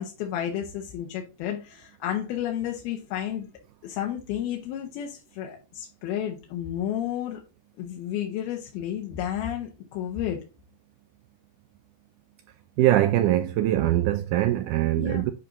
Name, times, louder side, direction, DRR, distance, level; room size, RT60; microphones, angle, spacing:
voice 1, 0.0-3.5 3.8-7.4 7.8-10.4 15.0-15.2, left 10 dB, 85° left, 2.9 m, -31 dB
voice 2, 12.8-15.3, right 14 dB, 85° right, 1.8 m, -22 dB
11.0 x 5.0 x 2.6 m
omnidirectional pair, 4.2 m